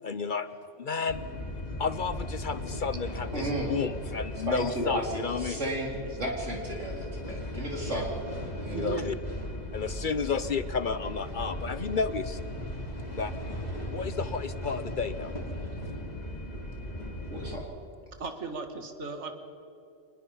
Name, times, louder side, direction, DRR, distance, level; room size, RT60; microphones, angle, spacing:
voice 1, 0.0-1.2 1.8-5.6 7.9-8.0 8.7-9.1 9.7-12.4 13.2-13.3 13.9-15.3, left 5 dB, 50° left, 13 dB, 0.7 m, -32 dB
sound 1, 1.1-17.6, left 1 dB, 35° left, 3.2 m, -37 dB
voice 2, 3.3-3.7 4.5-8.1 8.6-8.9 17.3-17.7, right 1 dB, 85° right, -1 dB, 4.3 m, -33 dB
voice 3, 8.7-9.1 18.2-19.3, right 4 dB, 70° right, 6 dB, 2.0 m, -36 dB
25.0 x 20.5 x 5.6 m, 2.7 s
omnidirectional pair, 1.2 m